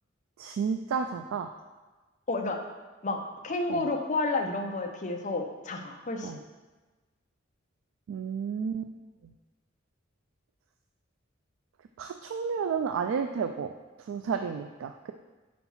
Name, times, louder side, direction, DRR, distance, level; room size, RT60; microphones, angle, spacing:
voice 1, 0.4-1.5 3.7-3.9 6.2-6.4 8.1-8.9 9.2-9.3 12.0-13.7 14.0-15.1, right 6 dB, 80° right, 6 dB, 0.3 m, -32 dB
voice 2, 2.3-2.6 3.0-3.2 3.4-6.3, left 3 dB, 40° left, 3 dB, 0.6 m, -30 dB
4.5 x 4.3 x 5.6 m, 1.3 s
head